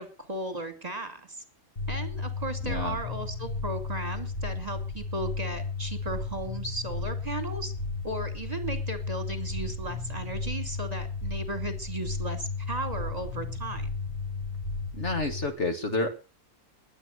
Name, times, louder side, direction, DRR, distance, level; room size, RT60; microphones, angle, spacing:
voice 1, 0.0-1.4 1.9-7.7 8.0-13.9, right 2 dB, 25° right, 8 dB, 2.5 m, -36 dB
sound 1, 1.8-15.5, left 3 dB, 25° left, 2.5 m, -34 dB
voice 2, 2.6-3.0 14.9-16.1, left 2 dB, 45° left, 6 dB, 2.2 m, -29 dB
21.0 x 8.5 x 6.4 m, 0.36 s
omnidirectional pair, 1.7 m